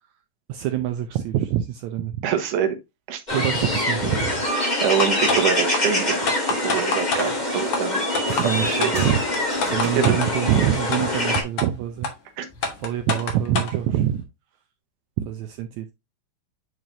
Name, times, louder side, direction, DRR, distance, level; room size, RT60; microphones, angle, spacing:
voice 1, 0.5-2.2 3.3-4.5 8.3-9.2 9.7-12.1 12.8-14.2 15.2-15.9, right 11 dB, 85° right, 1.6 m, -25 dB
voice 2, 2.2-2.8 3.1-3.2 4.8-8.0 8.4-9.0 10.0-10.1 12.4-12.5, right 8 dB, 70° right, 2.5 m, -25 dB
sound 1, 3.3-11.4, left 1 dB, 15° left, 1.5 m, -24 dB
sound 2, 5.0-5.4 5.7-5.8 6.3-7.3 7.7-7.8 8.2-8.5 8.8-8.9 9.3-10.3 10.9-11.0 11.3-11.7 12.0-12.1 12.6-13.7, left 4 dB, 50° left, 2.0 m, -25 dB
sound 3, 6.8-6.9 7.2-8.0 8.5-11.2 12.5-12.9, right 1 dB, 15° right, 1.2 m, -39 dB
8.9 x 4.7 x 2.6 m
omnidirectional pair, 4.0 m